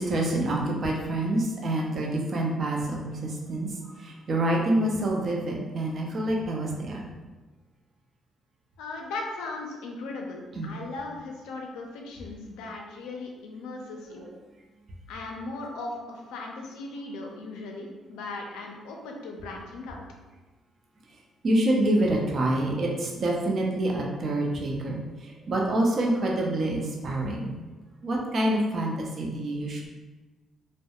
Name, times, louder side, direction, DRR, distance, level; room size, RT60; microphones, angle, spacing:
voice 1, 0.0-3.7 4.0-7.1 10.6-10.7 21.4-27.6 28.0-29.9, right 1 dB, 50° right, -1 dB, 0.5 m, -27 dB
voice 2, 8.8-14.2 15.1-20.0, left 3 dB, 90° left, 1 dB, 0.4 m, -38 dB
2.3 x 2.0 x 2.8 m, 1.2 s
cardioid pair, 80°, 0 cm